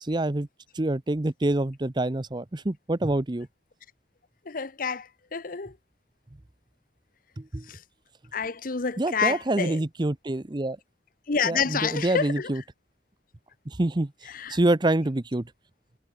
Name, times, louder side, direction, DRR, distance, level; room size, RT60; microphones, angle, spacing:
voice 1, 0.0-0.5 0.7-3.5 7.4-7.7 9.0-10.8 11.4-12.6 13.7-14.1 14.5-15.5, right 1 dB, 25° right, 0.8 m, -26 dB
voice 2, 4.5-5.7 7.7-7.8 8.3-9.8 11.3-12.5 14.3-14.6, left 6 dB, 50° left, 0.9 m, -28 dB
head